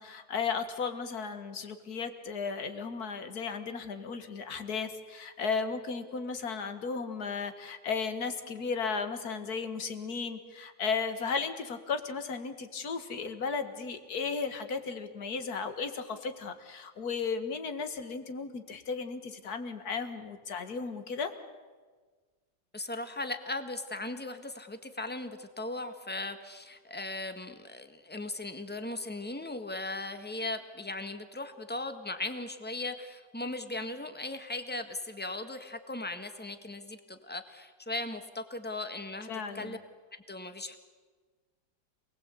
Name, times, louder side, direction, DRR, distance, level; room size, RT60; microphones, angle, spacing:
voice 1, 0.0-21.3 39.3-39.8, left 5 dB, 55° left, 9 dB, 2.2 m, -35 dB
voice 2, 22.7-39.3 39.5-39.8 40.1-40.8, left 2 dB, 5° left, 8 dB, 1.4 m, -38 dB
28.0 x 20.0 x 8.4 m, 1.4 s
omnidirectional pair, 2.0 m